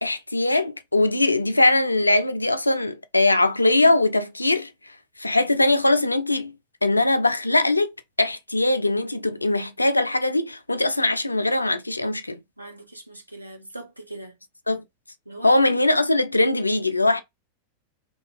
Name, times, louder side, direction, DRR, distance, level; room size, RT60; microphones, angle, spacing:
voice 1, 0.0-4.7 5.2-6.6 6.8-7.9 8.2-12.4 14.7-14.8 15.4-17.2, left 2 dB, 85° left, 0.3 m, -21 dB
voice 2, 12.6-14.4 15.3-15.6, right 2 dB, 85° right, 0.7 m, -40 dB
2.7 x 2.7 x 2.4 m
figure-of-eight pair, 90°, 0 cm